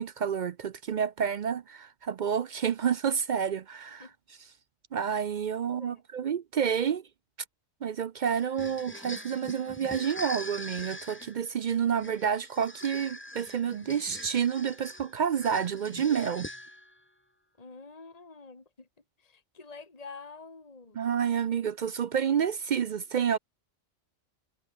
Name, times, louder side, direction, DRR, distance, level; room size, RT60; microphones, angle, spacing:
voice 1, 0.0-4.1 4.9-7.0 7.8-16.5 20.9-23.4, right 8 dB, 60° right, 0.4 m, -29 dB
voice 2, 5.6-6.0 17.6-18.9 19.2-21.0, left 4 dB, 30° left, 2.1 m, -47 dB
sound 1, 8.3-17.0, left 1 dB, 10° left, 1.6 m, -43 dB
omnidirectional pair, 1.4 m